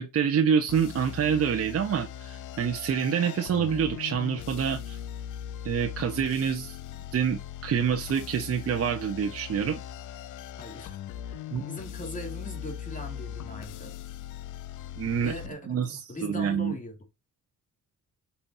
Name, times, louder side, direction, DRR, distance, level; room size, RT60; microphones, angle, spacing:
voice 1, 0.0-5.0 5.6-6.8 7.1-9.8 11.5-11.6 15.0-15.3 15.7-16.8, right 7 dB, 50° right, 1.2 m, -27 dB
sound 1, 0.7-15.5, left 10 dB, 90° left, 0.9 m, -40 dB
voice 2, 10.6-11.0 11.2-13.9 15.2-16.9, left 1 dB, 25° left, 3.0 m, -40 dB
8.5 x 5.9 x 2.8 m
cardioid pair, 90°, 30 cm